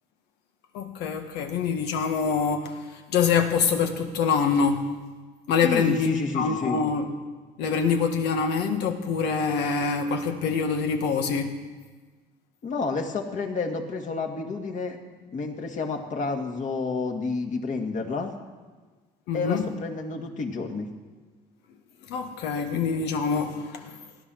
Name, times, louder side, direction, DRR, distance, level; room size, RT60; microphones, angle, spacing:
voice 1, 0.7-4.8 5.5-7.1 7.6-11.6 19.3-19.7 22.1-24.0, left 5 dB, 85° left, 5 dB, 1.7 m, -25 dB
voice 2, 5.6-6.9 12.6-15.0 15.3-18.3 19.3-20.9, left 3 dB, 50° left, 3 dB, 2.1 m, -30 dB
17.0 x 10.0 x 6.4 m, 1.4 s
cardioid pair, 110°, 17 cm